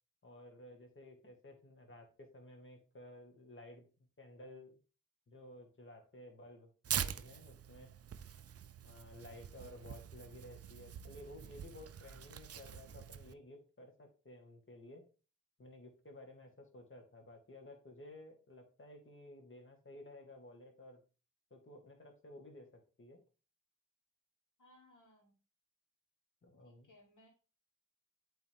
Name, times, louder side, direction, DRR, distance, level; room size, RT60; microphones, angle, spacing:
voice 1, 0.2-4.8 5.3-7.9 8.8-15.1 15.6-21.0 21.5-23.2 26.4-26.9, left 1 dB, 35° left, 2.1 m, -55 dB
Tearing, 6.8-13.3, right 8 dB, 45° right, 0.5 m, -44 dB
voice 2, 24.6-25.4 26.6-27.3, left 1 dB, 65° left, 2.7 m, -64 dB
8.3 x 4.1 x 3.7 m
cardioid pair, 50°, 34 cm